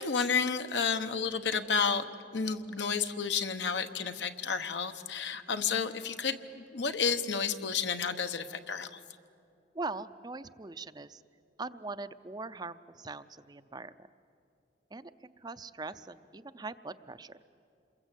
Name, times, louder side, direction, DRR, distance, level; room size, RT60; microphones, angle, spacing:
voice 1, 0.0-2.0 2.3-9.0, left 5 dB, 75° left, 8 dB, 1.1 m, -31 dB
voice 2, 9.7-11.2 11.6-14.1 14.9-17.4, right 3 dB, 25° right, 12 dB, 0.5 m, -41 dB
27.5 x 22.0 x 8.2 m, 2.5 s
head